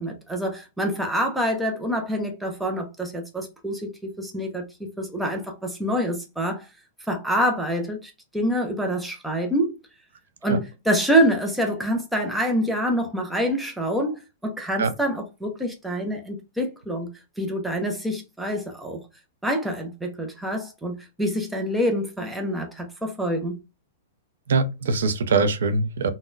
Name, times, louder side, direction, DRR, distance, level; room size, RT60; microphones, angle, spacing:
voice 1, 0.0-6.6 7.1-9.7 10.4-17.1 17.4-19.0 19.4-23.6, equal, ahead, 0.5 m, -26 dB
voice 2, 24.5-26.1, right 4 dB, 80° right, 0.6 m, -22 dB
3.8 x 2.1 x 2.5 m
supercardioid pair, 170°, 0 cm